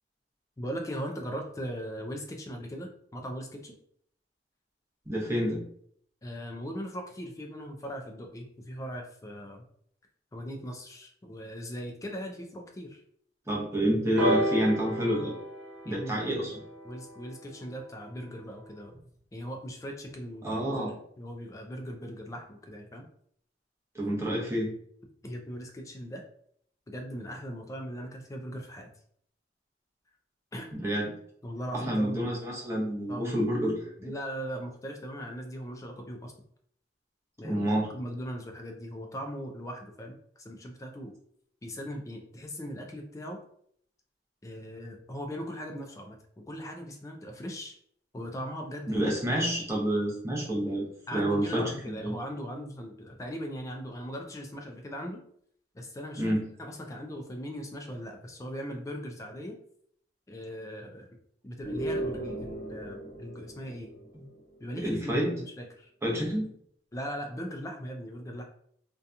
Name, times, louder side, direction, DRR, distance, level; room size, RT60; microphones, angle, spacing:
voice 1, 0.6-3.7 6.2-9.6 10.3-13.0 15.9-16.4 16.8-18.9 19.3-20.9 21.2-23.0 25.2-26.2 26.9-28.9 30.5-30.7 31.4-32.2 33.1-33.4 34.0-36.3 37.4-37.7 37.9-41.2 41.6-43.4 44.4-47.8 48.1-49.0 51.1-55.2 55.7-56.2 56.6-59.6 60.3-61.1 61.4-63.9 64.6-65.9 66.9-68.4, equal, 20° left, 3 dB, 0.3 m, -39 dB
voice 2, 5.1-5.6 13.5-15.3 15.8-16.5 20.4-20.9 23.9-24.7 30.7-31.1 31.7-34.1 37.4-37.9 48.9-52.2 56.2-56.5 64.8-65.3 66.0-66.5, equal, 15° right, -4 dB, 0.7 m, -28 dB
sound 1, 14.2-18.0 18.9-19.0, right 1 dB, 80° right, 0.8 m, -32 dB
sound 2, 61.6-64.5, right 1 dB, 90° left, 0.9 m, -36 dB
2.7 x 2.2 x 2.4 m, 0.65 s
head